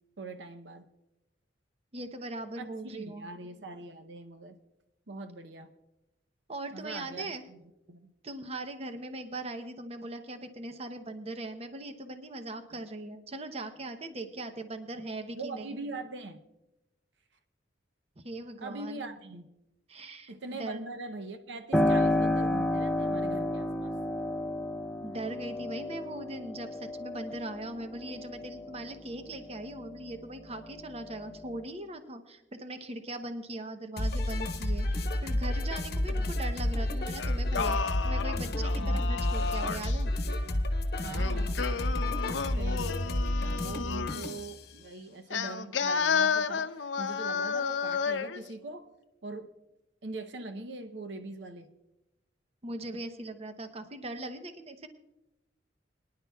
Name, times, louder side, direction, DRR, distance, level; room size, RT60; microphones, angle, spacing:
voice 1, 0.2-0.8 2.6-4.6 5.1-5.7 6.7-7.6 7.9-8.1 15.3-16.5 18.6-19.5 20.3-23.9 38.8-39.0 41.0-41.6 42.6-48.9 49.2-49.5 50.0-51.7, right 2 dB, 70° right, 8 dB, 0.7 m, -42 dB
voice 2, 1.9-3.3 6.5-7.4 8.2-15.8 18.2-19.2 19.9-20.8 25.0-37.8 38.0-40.1 52.6-54.9, right 2 dB, 35° right, 8 dB, 0.8 m, -40 dB
Piano, 21.7-30.2 30.6-31.6, left 1 dB, ahead, 0.6 m, -31 dB
sound 1, 34.0-44.5, left 1 dB, 60° left, 1.0 m, -30 dB
Singing, 37.2-40.0 41.1-44.3 45.3-48.4, left 6 dB, 85° left, 0.6 m, -32 dB
23.0 x 10.5 x 2.3 m, 0.94 s
head